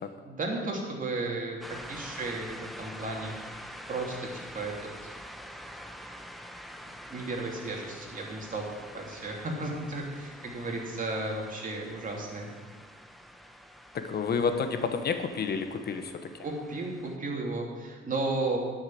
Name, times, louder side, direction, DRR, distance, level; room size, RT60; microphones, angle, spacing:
voice 1, 0.2-3.4 3.9-4.7 5.0-5.1 7.1-8.7 8.9-12.5 16.4-18.6, right 2 dB, 40° right, 0 dB, 2.9 m, -34 dB
sound 1, 1.6-17.2, equal, ahead, 1.0 m, -46 dB
voice 2, 13.9-16.3, left 5 dB, 55° left, 8 dB, 1.1 m, -30 dB
12.0 x 6.4 x 7.7 m, 1.5 s
cardioid pair, 90°, 20 cm